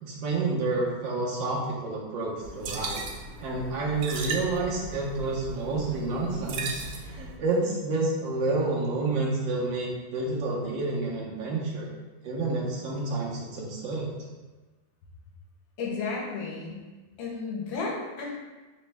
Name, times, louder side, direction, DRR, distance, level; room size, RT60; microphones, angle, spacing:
voice 1, 0.0-3.0 3.4-11.9 12.2-14.1, right 3 dB, 75° right, -3 dB, 1.4 m, -29 dB
sound 1, 2.4-7.4, right 3 dB, 90° right, 0.7 m, -37 dB
voice 2, 15.8-16.8 17.2-18.4, left 4 dB, 80° left, -2 dB, 1.6 m, -33 dB
3.9 x 3.0 x 3.3 m, 1.2 s
omnidirectional pair, 2.1 m